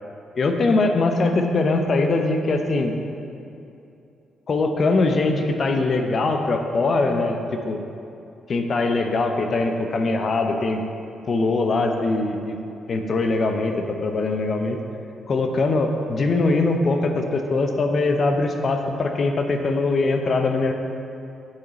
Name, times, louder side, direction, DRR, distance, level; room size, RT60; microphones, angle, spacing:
voice 1, 0.3-2.9 4.5-7.8 8.5-10.8 11.3-12.6 12.9-14.8 15.3-20.7, left 3 dB, 50° left, 4 dB, 0.7 m, -22 dB
7.5 x 4.5 x 4.1 m, 2.7 s
supercardioid pair, 50°, 0 cm